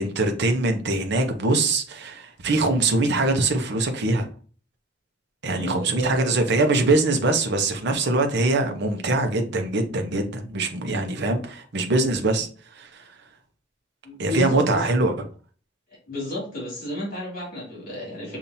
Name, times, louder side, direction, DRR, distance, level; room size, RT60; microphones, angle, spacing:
voice 1, 0.0-4.2 5.4-12.5 12.8-13.1 14.2-15.1, right 2 dB, 60° right, 4 dB, 0.9 m, -23 dB
voice 2, 5.5-6.2 14.0-14.9 16.1-18.4, left 1 dB, 50° left, -4 dB, 2.4 m, -31 dB
7.0 x 2.7 x 2.7 m, 0.41 s
head